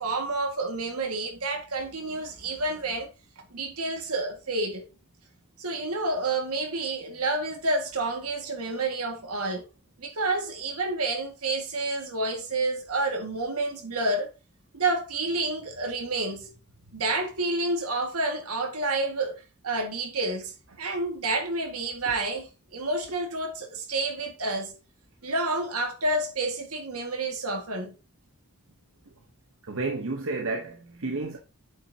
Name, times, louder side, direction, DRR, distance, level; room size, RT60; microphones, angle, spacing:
voice 1, 0.0-3.1 3.5-4.8 5.6-9.6 10.0-14.3 14.7-16.5 16.9-24.8 25.2-27.9, right 2 dB, 80° right, 1.8 m, -29 dB
voice 2, 29.7-31.4, right 3 dB, 65° right, 0.9 m, -31 dB
8.3 x 5.8 x 2.8 m
head